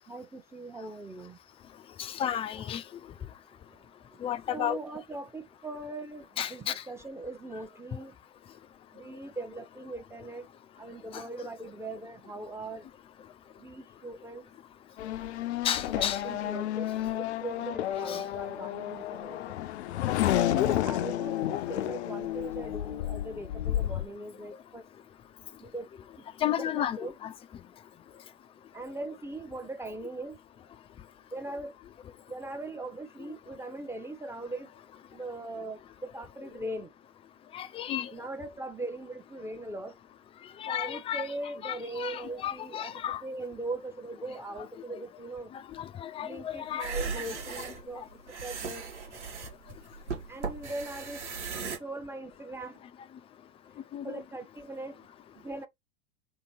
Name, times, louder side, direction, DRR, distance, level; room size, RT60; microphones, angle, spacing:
voice 1, 0.1-1.4 4.5-8.1 8.9-10.5 10.8-12.8 13.6-14.5 15.9-19.6 20.6-24.8 25.6-25.9 26.4-27.1 28.7-30.4 31.3-31.7 32.3-34.7 35.1-36.9 38.1-39.9 40.7-45.5 46.2-48.0 48.4-48.9 50.3-51.2 51.8-52.8 54.0-55.1 55.4-55.7, right 2 dB, 10° right, 0.7 m, -40 dB
voice 2, 2.0-2.8 4.2-4.8 6.4-6.8 11.1-11.5 15.6-16.2 18.1-18.2 20.5-20.7 26.4-27.3 37.5-38.1 40.6-41.3 41.6-43.2 45.7-47.1 53.9-54.2, left 10 dB, 15° left, 0.3 m, -33 dB
Race car auto racing / Accelerating revving vroom, 15.0-24.1, left 12 dB, 75° left, 0.5 m, -31 dB
sound 1, 46.7-51.8, right 5 dB, 90° right, 1.6 m, -37 dB
3.2 x 2.9 x 4.2 m
hypercardioid pair, 90°, 34 cm